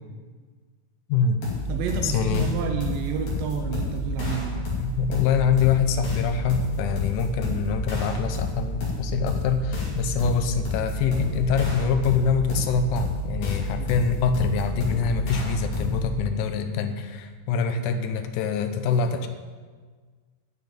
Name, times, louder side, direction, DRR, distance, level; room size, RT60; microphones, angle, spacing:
voice 1, 1.1-1.4 2.0-2.5 4.6-19.3, left 6 dB, 75° left, 7 dB, 2.0 m, -25 dB
sound 1, 1.4-16.2, left 1 dB, 55° left, 3.9 m, -30 dB
voice 2, 1.7-4.7 13.8-13.9, right 7 dB, 75° right, 3 dB, 2.3 m, -30 dB
10.0 x 6.3 x 8.8 m, 1.5 s
omnidirectional pair, 4.3 m